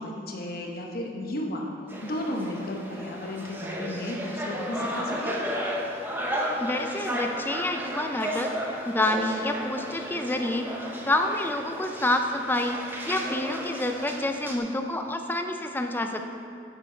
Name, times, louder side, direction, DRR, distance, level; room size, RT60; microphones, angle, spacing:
voice 1, 0.0-1.7 2.0-5.4, left 1 dB, 50° left, 0 dB, 1.0 m, -33 dB
sound 1, 1.9-14.6, equal, 10° right, 0.8 m, -34 dB
voice 2, 6.6-8.5 8.9-10.7 11.0-16.3, left 1 dB, 10° left, 5 dB, 0.4 m, -28 dB
8.2 x 7.0 x 4.5 m, 2.4 s
head